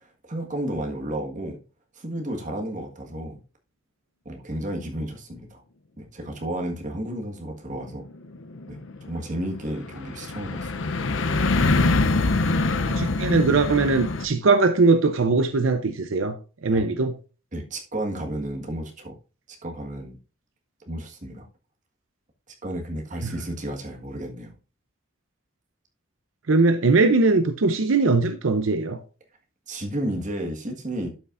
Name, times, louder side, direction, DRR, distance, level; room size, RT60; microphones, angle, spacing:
voice 1, 0.3-1.6 2.0-3.4 4.2-5.6 6.0-8.1 8.7-8.8 9.1-10.7 16.7-16.8 17.5-19.1 19.6-20.2 20.9-21.5 22.6-24.5 29.7-31.1, right 1 dB, 40° right, 1.6 m, -32 dB
sound 1, 7.9-14.3, left 3 dB, 70° left, 0.7 m, -24 dB
voice 2, 12.8-16.4 16.6-17.1 23.2-23.3 26.5-29.0, right 3 dB, 80° right, 0.7 m, -20 dB
12.0 x 5.7 x 2.5 m
head